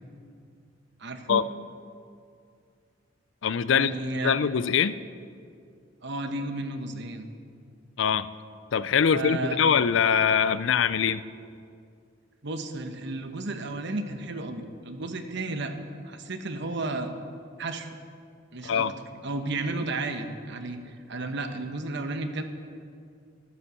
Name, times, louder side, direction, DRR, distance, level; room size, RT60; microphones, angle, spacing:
voice 1, 1.0-1.4 3.7-4.4 6.0-7.3 9.1-9.6 12.4-15.7 16.0-17.1 17.6-18.0 18.5-18.9 19.2-22.4, right 2 dB, 60° right, 7 dB, 1.1 m, -33 dB
voice 2, 3.4-5.0 8.0-8.3 8.7-11.2 18.6-18.9, left 7 dB, 65° left, 16 dB, 0.4 m, -23 dB
13.0 x 9.7 x 6.8 m, 2.3 s
head